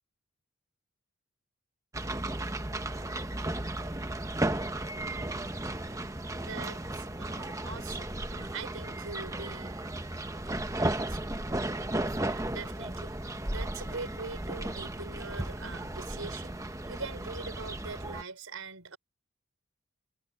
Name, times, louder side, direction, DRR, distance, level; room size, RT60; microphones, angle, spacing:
sound 1, 1.9-18.2, right 1 dB, 15° right, 1.0 m, -35 dB
voice 1, 6.4-9.7 10.7-11.3 12.2-19.0, right 4 dB, 90° right, 5.6 m, -43 dB
head